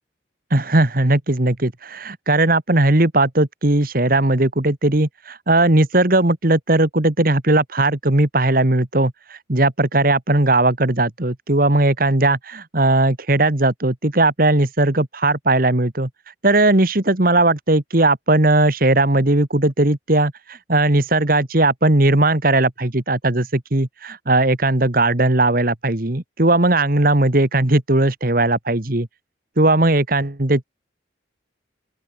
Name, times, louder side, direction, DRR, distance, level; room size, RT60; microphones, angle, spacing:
voice 1, 0.5-29.1 29.6-30.6, right 2 dB, 50° right, 1.8 m, -18 dB
open air
head